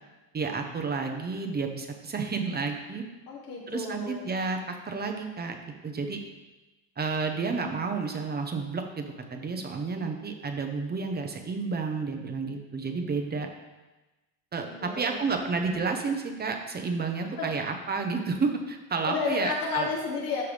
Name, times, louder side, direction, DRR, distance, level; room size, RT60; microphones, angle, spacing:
voice 1, 0.3-3.0 3.7-5.5 5.8-6.2 7.0-13.5 14.5-19.9, right 4 dB, 25° right, 4 dB, 0.9 m, -31 dB
voice 2, 3.3-4.2 14.6-15.3 17.4-17.6 19.1-20.4, left 4 dB, 70° left, -4 dB, 3.0 m, -32 dB
13.5 x 5.7 x 3.4 m, 1.1 s
cardioid pair, 140°, 39 cm